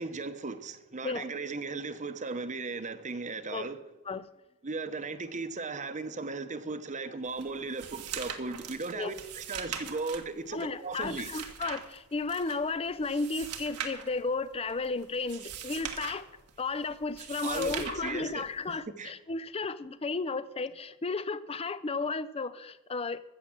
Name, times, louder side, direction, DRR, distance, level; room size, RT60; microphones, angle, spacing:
voice 1, 0.0-3.8 4.6-11.3 17.4-19.1, right 3 dB, 35° right, 0.9 m, -37 dB
sound 1, 7.2-18.8, right 8 dB, 90° right, 1.5 m, -42 dB
voice 2, 10.5-16.3 16.6-23.2, left 3 dB, 25° left, 0.5 m, -33 dB
14.5 x 7.4 x 7.4 m
head